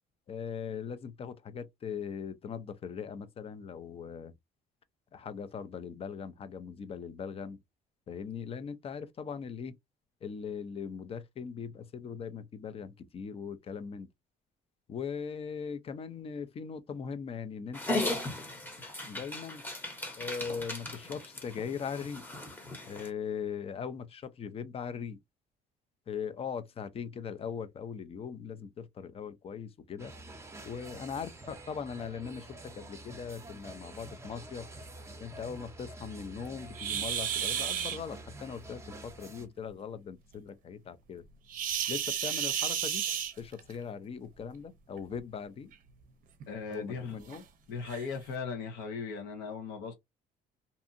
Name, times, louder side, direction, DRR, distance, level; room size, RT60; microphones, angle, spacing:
voice 1, 0.3-4.3 5.1-7.6 8.1-9.8 10.2-14.1 14.9-18.0 19.1-19.6 20.2-22.2 22.9-25.2 26.1-30.1 30.6-34.7 35.2-41.2 41.9-43.0 43.4-45.7 46.7-47.4, left 6 dB, 35° left, 0.5 m, -40 dB
Dog, 17.7-23.1, left 2 dB, 10° left, 0.9 m, -37 dB
sound 1, 30.0-39.5, right 2 dB, 15° right, 0.7 m, -48 dB
sound 2, 36.7-38.0 41.5-43.7 45.0-45.2 45.7-45.8 46.4-46.5 47.3-47.4 47.9-48.1, right 9 dB, 55° right, 0.6 m, -32 dB
voice 2, 46.5-47.2 47.7-49.9, left 5 dB, 90° left, 0.9 m, -38 dB
2.7 x 2.4 x 2.5 m
cardioid pair, 110°, 17 cm